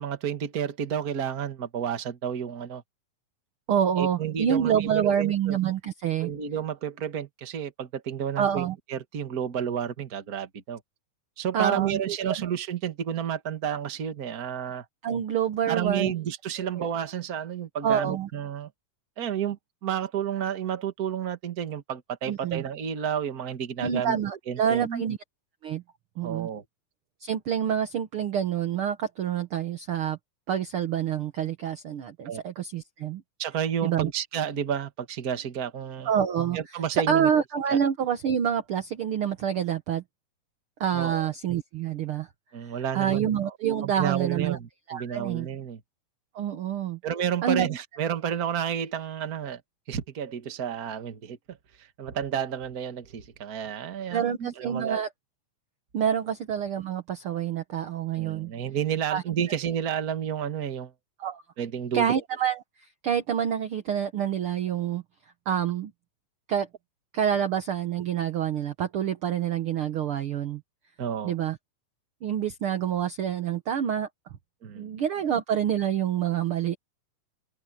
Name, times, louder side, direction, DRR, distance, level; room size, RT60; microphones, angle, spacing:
voice 1, 0.0-2.8 4.0-5.6 6.2-10.8 11.4-14.8 15.7-18.7 19.2-24.2 24.5-25.0 26.2-26.6 32.2-32.4 33.4-36.1 36.5-37.3 37.7-37.8 40.9-41.3 42.5-43.5 43.8-45.8 47.0-49.6 49.9-51.6 52.0-55.0 58.2-60.9 61.6-62.1 71.0-71.3 74.6-74.9, right 9 dB, 45° right, 1.3 m, -31 dB
voice 2, 3.7-6.3 8.4-8.8 11.5-12.4 15.0-16.1 16.6-16.9 17.8-18.3 22.3-22.6 23.8-25.2 25.6-25.8 26.2-26.5 27.2-30.2 30.5-33.2 33.8-34.1 36.0-36.6 37.1-40.0 40.8-42.3 42.9-44.6 44.9-45.5 46.3-47.0 47.4-47.7 54.1-55.1 55.9-58.5 59.1-59.2 61.2-61.4 61.9-62.6 63.0-65.0 65.4-65.9 66.5-66.7 67.1-70.6 71.2-71.6 72.2-74.1 74.7-76.8, right 9 dB, 70° right, 1.3 m, -27 dB
open air
omnidirectional pair, 4.0 m